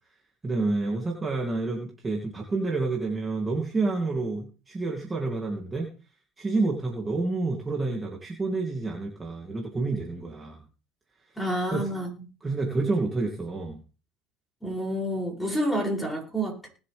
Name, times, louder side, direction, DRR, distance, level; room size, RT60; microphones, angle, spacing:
voice 1, 0.4-5.9 6.4-10.6 11.7-11.9 12.4-13.8, right 3 dB, 15° right, -1 dB, 2.9 m, -29 dB
voice 2, 11.4-12.3 14.6-16.7, equal, 5° left, -1 dB, 7.1 m, -29 dB
20.0 x 7.8 x 3.5 m, 0.36 s
supercardioid pair, 115°, 0 cm